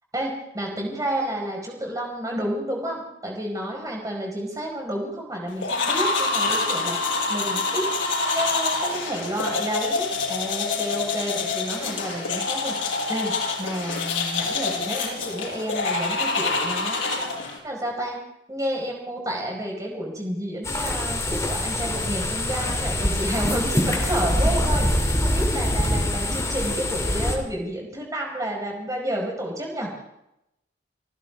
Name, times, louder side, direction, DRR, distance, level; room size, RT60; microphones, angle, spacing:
voice 1, 0.1-18.2 18.5-30.0, right 1 dB, 20° right, 0 dB, 5.0 m, -30 dB
sound 1, 5.6-17.6, left 3 dB, 85° left, 7.3 m, -26 dB
sound 2, 20.6-27.4, left 1 dB, 15° left, 2.8 m, -24 dB
27.0 x 15.0 x 3.6 m, 0.83 s
head